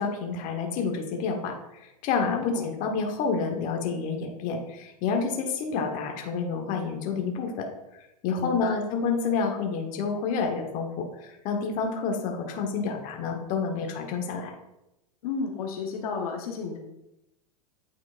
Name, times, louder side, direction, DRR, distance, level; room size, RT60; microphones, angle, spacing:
voice 1, 0.0-7.7 8.2-14.5, left 5 dB, 40° left, 3 dB, 1.1 m, -29 dB
voice 2, 2.3-2.6 8.3-8.8 15.2-16.8, left 5 dB, 65° left, 2 dB, 1.0 m, -32 dB
8.6 x 4.4 x 2.5 m, 0.90 s
hypercardioid pair, 105°, 20 cm